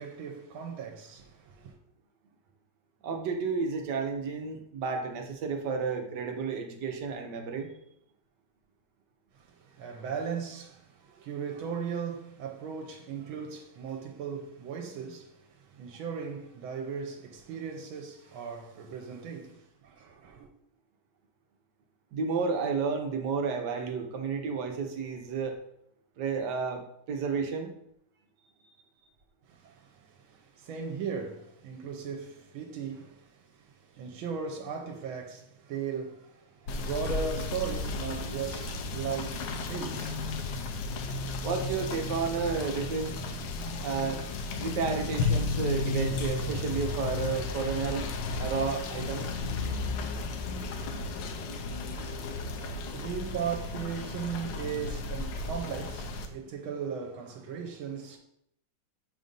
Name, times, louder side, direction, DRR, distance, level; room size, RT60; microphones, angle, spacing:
voice 1, 0.0-1.8 9.3-20.5 29.4-40.3 41.1-41.2 51.6-58.2, right 6 dB, 85° right, 1.5 m, -38 dB
voice 2, 3.0-7.7 22.1-25.6 26.2-27.7 41.4-43.1 43.8-44.2 44.6-48.1 48.4-49.3, right 5 dB, 65° right, 1.3 m, -31 dB
Rain / Motor vehicle (road), 36.7-56.3, left 3 dB, 70° left, 1.3 m, -34 dB
7.6 x 2.6 x 5.2 m
omnidirectional pair, 2.2 m